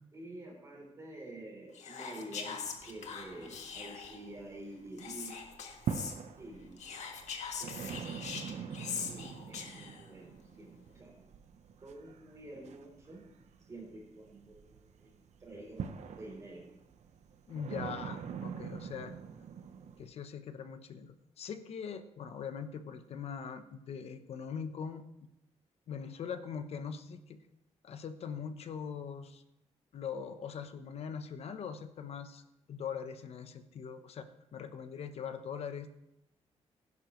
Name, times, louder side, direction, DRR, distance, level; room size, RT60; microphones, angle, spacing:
voice 1, 0.1-5.3 6.4-6.8 7.6-8.1 8.5-11.1 11.8-13.2 13.6-16.6, right 2 dB, 25° right, -2 dB, 3.6 m, -49 dB
Whispering, 1.7-4.3 5.0-6.2 6.8-10.1, left 6 dB, 85° left, 1.6 m, -42 dB
sound 1, 2.7-4.8 5.2-20.1, right 7 dB, 80° right, 1.0 m, -44 dB
voice 2, 17.5-19.1 20.0-25.0 25.9-27.4 27.8-29.4 29.9-32.4 32.7-35.9, left 7 dB, 65° left, 9 dB, 0.9 m, -41 dB
16.5 x 11.0 x 3.2 m, 0.85 s
wide cardioid pair, 180°, 12 cm